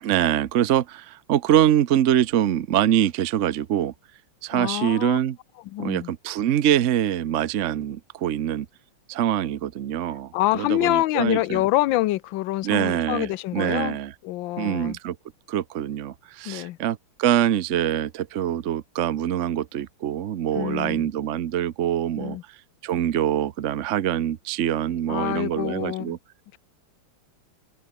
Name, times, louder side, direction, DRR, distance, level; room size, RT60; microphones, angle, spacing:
voice 1, 0.0-3.9 4.4-5.4 5.8-8.7 9.1-11.6 12.6-14.1 14.6-15.2 15.5-22.4 22.8-26.2, right 11 dB, 60° right, 0.7 m, -24 dB
voice 2, 4.5-5.2 5.6-6.1 10.3-14.0 14.2-15.0 16.4-16.8 20.5-21.1 22.2-22.4 25.1-26.2, left 16 dB, 70° left, 1.3 m, -26 dB
omnidirectional pair, 2.3 m